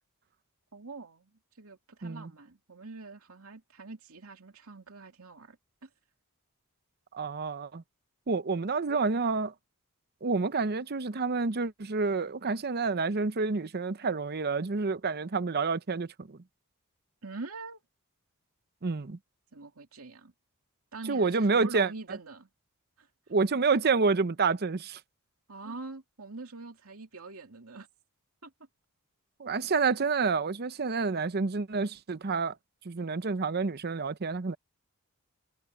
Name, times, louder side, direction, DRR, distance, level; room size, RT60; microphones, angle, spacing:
voice 1, 0.7-1.3 1.6-5.6 5.8-5.9 17.2-17.8 19.5-20.3 20.9-22.5 23.0-23.1 25.5-27.9 28.4-28.5, right 3 dB, 70° right, 2.9 m, -44 dB
voice 2, 7.1-7.8 8.3-9.5 10.2-16.4 18.8-19.2 21.1-21.9 23.3-25.0 29.4-32.5 32.9-34.6, right 4 dB, 45° right, 0.7 m, -28 dB
head